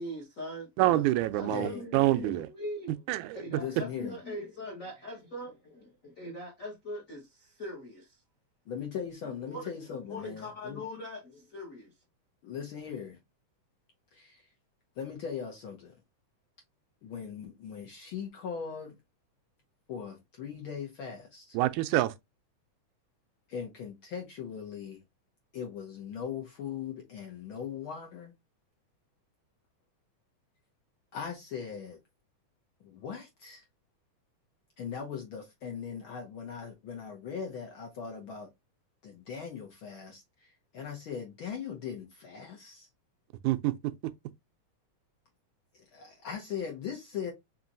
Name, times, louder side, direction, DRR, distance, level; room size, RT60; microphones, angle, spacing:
voice 1, 0.0-1.1 1.3-3.0 3.3-8.2 9.5-9.7 10.0-11.9, left 1 dB, 90° left, 0.7 m, -41 dB
voice 2, 0.8-2.5 3.1-3.4 21.5-22.1 43.4-43.9, right 16 dB, 85° right, 2.0 m, -26 dB
voice 3, 1.5-1.8 3.6-4.2 8.7-10.8 12.4-13.2 14.1-14.5 14.9-16.0 17.0-19.0 19.9-21.6 23.5-25.0 25.5-28.3 31.1-32.0 32.8-33.6 34.8-38.5 39.0-42.9 45.7-47.3, left 7 dB, 65° left, 1.3 m, -39 dB
4.9 x 3.0 x 2.6 m
omnidirectional pair, 3.4 m